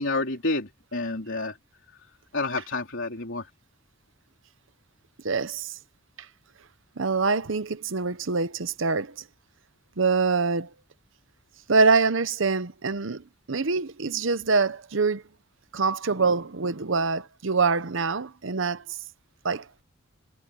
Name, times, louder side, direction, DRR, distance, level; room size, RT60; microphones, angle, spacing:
voice 1, 0.0-1.6 2.3-3.5, left 2 dB, 70° left, 3.3 m, -29 dB
voice 2, 5.2-5.7 7.0-9.1 10.0-10.7 11.7-15.2 15.7-18.8 19.4-19.8, right 4 dB, 70° right, 0.9 m, -25 dB
head